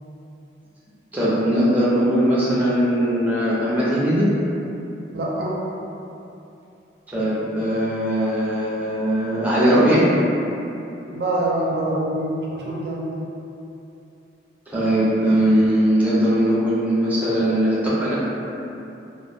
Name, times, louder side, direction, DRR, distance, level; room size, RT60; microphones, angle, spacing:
voice 1, 1.1-4.3 7.1-10.0 14.7-18.1, equal, 10° right, -9 dB, 0.5 m, -20 dB
voice 2, 5.1-5.6 11.1-13.1, right 1 dB, 65° right, -5 dB, 0.5 m, -25 dB
2.1 x 2.0 x 3.2 m, 2.8 s
head